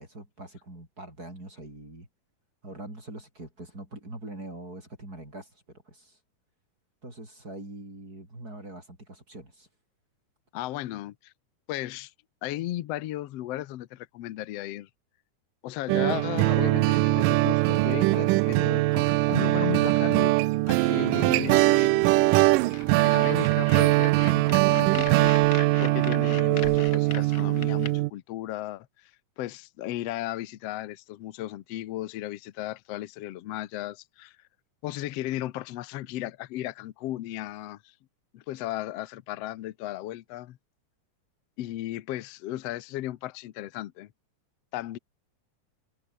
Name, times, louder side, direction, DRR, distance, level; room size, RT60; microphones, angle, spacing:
voice 1, 0.0-2.1 2.6-6.2 7.0-9.7, right 1 dB, 25° right, 7.8 m, -43 dB
voice 2, 10.5-11.3 11.7-12.1 12.4-14.9 15.6-20.3 20.7-22.5 23.0-25.3 25.8-34.4 34.8-37.9 38.3-40.6 41.6-44.1 44.7-45.0, left 14 dB, 65° left, 1.6 m, -35 dB
sound 1, 15.9-28.1, right 20 dB, 90° right, 2.2 m, -22 dB
sound 2, 22.7-27.9, left 6 dB, 40° left, 1.3 m, -40 dB
omnidirectional pair, 3.7 m